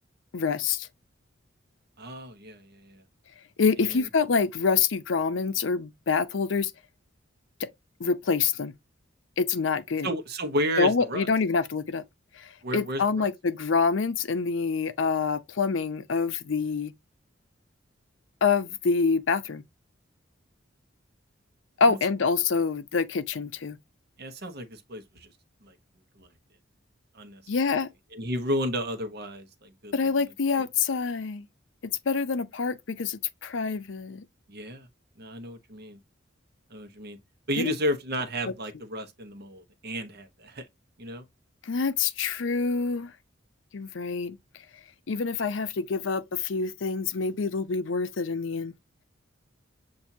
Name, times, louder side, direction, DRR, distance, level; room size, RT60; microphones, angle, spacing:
voice 1, 0.3-0.9 3.6-6.7 7.6-7.7 8.0-8.7 9.4-10.1 10.8-12.0 12.3-16.9 18.4-19.6 21.8-23.8 27.5-27.9 29.9-31.5 31.8-34.2 37.6-37.7 41.6-43.1 43.7-44.4 45.1-48.7, left 5 dB, 70° left, 0.6 m, -26 dB
voice 2, 2.0-3.0 3.8-4.1 10.0-11.3 12.6-13.3 21.9-22.0 24.2-25.3 25.6-25.7 26.2-26.3 27.1-27.4 28.1-29.9 34.5-34.9 35.2-36.0 36.7-37.2 37.5-40.7 41.0-41.2, equal, 55° right, 1.0 m, -32 dB
7.1 x 2.6 x 2.7 m
head